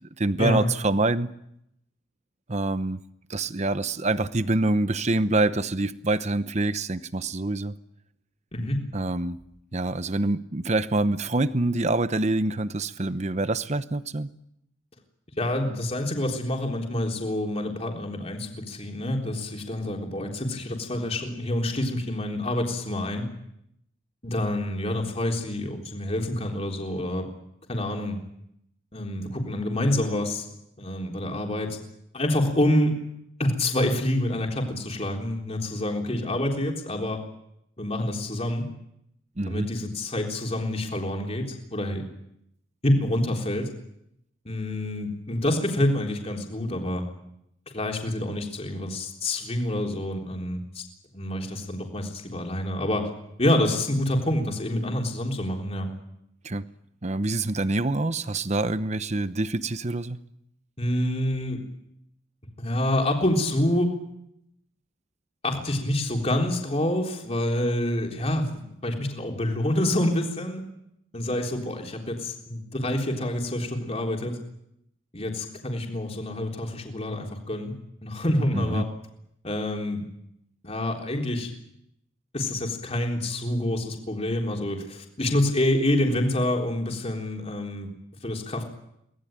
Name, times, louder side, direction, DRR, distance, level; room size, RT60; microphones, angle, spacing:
voice 1, 0.2-1.3 2.5-3.0 3.3-7.7 8.9-9.4 9.7-14.3 39.4-39.7 56.4-56.6 57.0-60.2 78.5-78.8, right 2 dB, 35° right, 13 dB, 0.9 m, -26 dB
voice 2, 15.4-23.3 24.2-27.3 27.7-28.2 28.9-30.5 30.8-31.8 32.1-32.9 33.4-37.2 37.8-38.6 39.4-42.1 42.8-43.7 44.5-47.1 47.7-50.8 51.1-53.1 53.4-55.9 60.8-61.6 62.6-63.9 65.4-70.6 71.1-74.4 75.1-77.7 78.0-78.9 79.4-80.0 80.6-81.5 82.3-87.9 88.2-88.6, left 1 dB, 30° left, 1 dB, 3.7 m, -27 dB
24.0 x 19.5 x 9.0 m, 0.79 s
head